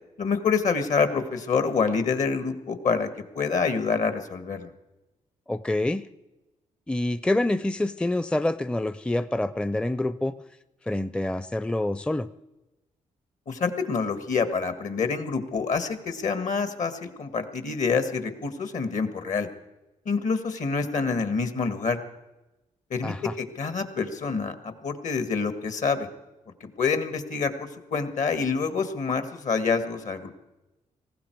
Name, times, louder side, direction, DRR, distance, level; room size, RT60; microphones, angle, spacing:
voice 1, 0.2-3.1 3.3-4.7 13.5-19.5 20.0-22.0 22.9-26.1 26.6-30.3, left 5 dB, 60° left, 9 dB, 1.7 m, -27 dB
voice 2, 5.5-6.0 6.9-10.4 10.9-12.3 23.0-23.3, left 1 dB, 5° left, 13 dB, 0.5 m, -26 dB
18.5 x 15.5 x 4.7 m, 1.0 s
supercardioid pair, 55°, 14 cm